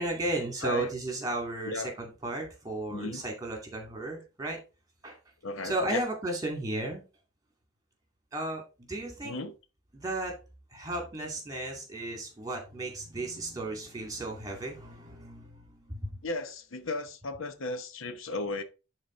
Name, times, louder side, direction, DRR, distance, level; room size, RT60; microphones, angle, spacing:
voice 1, 0.0-4.6 5.0-5.2 5.6-7.0 8.3-9.4 9.9-10.4 10.7-16.2, right 2 dB, 20° right, 2.3 m, -34 dB
voice 2, 0.6-0.9 1.6-1.9 2.9-3.2 5.4-6.0 9.2-9.5 16.2-18.6, left 2 dB, 70° left, 0.9 m, -35 dB
11.0 x 4.0 x 3.9 m
head